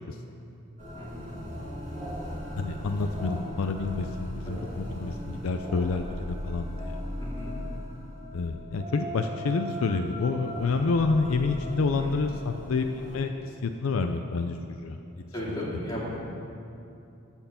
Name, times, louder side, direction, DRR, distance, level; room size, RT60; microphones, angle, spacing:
sound 1, 0.8-13.2, equal, 35° right, 2.1 m, -38 dB
voice 1, 0.9-1.4 2.0-2.4 4.4-4.7 7.2-7.5 11.9-12.1 15.3-16.2, equal, 20° left, -7 dB, 2.4 m, -36 dB
voice 2, 2.6-4.6 5.0-7.0 8.3-15.0, left 4 dB, 70° left, 6 dB, 0.4 m, -28 dB
13.5 x 4.5 x 7.0 m, 2.7 s
head